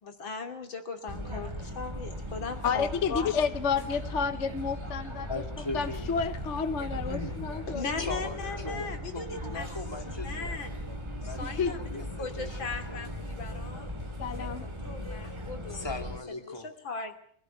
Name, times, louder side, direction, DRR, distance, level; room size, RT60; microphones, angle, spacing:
voice 1, 0.0-3.3 7.7-9.7 10.0-10.8 11.2-13.9 14.4-15.9 16.4-17.2, left 4 dB, 85° left, 5 dB, 3.6 m, -38 dB
sound 1, 1.1-16.2, equal, 15° right, 2.2 m, -38 dB
voice 2, 2.6-5.4 5.7-7.9 11.4-11.7 14.2-14.6, left 6 dB, 45° left, 10 dB, 1.2 m, -30 dB
voice 3, 5.3-6.2 7.1-7.3 8.0-8.9 9.1-10.6 11.3-13.1 15.7-16.7, left 2 dB, 15° left, 4 dB, 2.2 m, -39 dB
24.0 x 16.0 x 9.1 m, 0.62 s
omnidirectional pair, 2.1 m